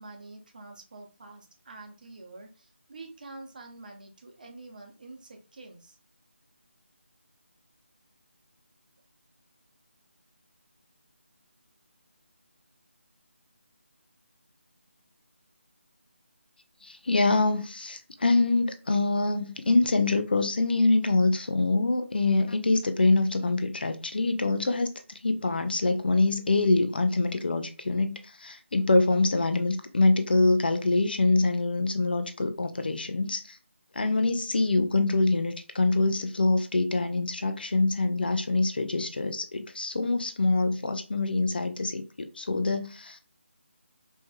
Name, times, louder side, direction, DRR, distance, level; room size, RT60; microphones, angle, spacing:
voice 1, 0.0-6.0, right 2 dB, 40° right, 0.8 m, -47 dB
voice 2, 16.8-24.9 25.2-33.6 33.9-43.2, left 3 dB, 50° left, 0.5 m, -25 dB
4.2 x 3.1 x 2.2 m
figure-of-eight pair, 160°, 7 cm